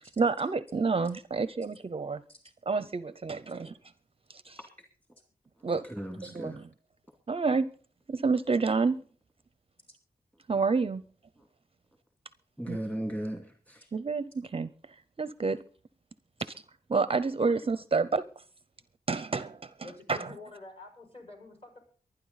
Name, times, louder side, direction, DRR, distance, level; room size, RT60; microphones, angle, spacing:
voice 1, 0.2-2.2 2.7-3.8 4.3-4.6 5.6-5.8 6.2-6.7 7.3-7.7 8.1-9.0 10.5-11.0 12.7-12.8 13.9-14.7 15.2-15.6 16.9-18.2 19.1-19.7 20.1-20.3, right 4 dB, 35° right, 0.5 m, -28 dB
voice 2, 5.9-6.6 12.6-13.9, right 1 dB, 10° left, 2.3 m, -36 dB
voice 3, 19.8-21.8, left 3 dB, 35° left, 6.0 m, -48 dB
23.5 x 9.9 x 4.1 m
wide cardioid pair, 110°, 16 cm